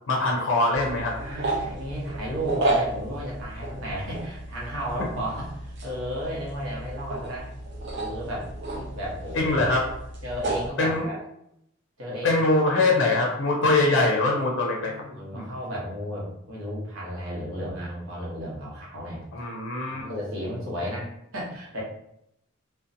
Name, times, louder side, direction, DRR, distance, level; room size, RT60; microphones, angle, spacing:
voice 1, 0.1-1.1 9.3-9.9 10.8-11.1 12.2-14.9 15.3-15.5 19.3-20.0, left 2 dB, 60° left, -1 dB, 0.5 m, -23 dB
sound 1, 0.7-10.7, right 2 dB, 55° right, 0.5 m, -32 dB
voice 2, 1.1-7.5 8.0-9.7 10.2-11.2 12.0-12.3 12.7-13.6 14.7-19.2 19.9-21.8, equal, 70° right, -4 dB, 0.9 m, -34 dB
2.5 x 2.1 x 2.5 m, 0.76 s
head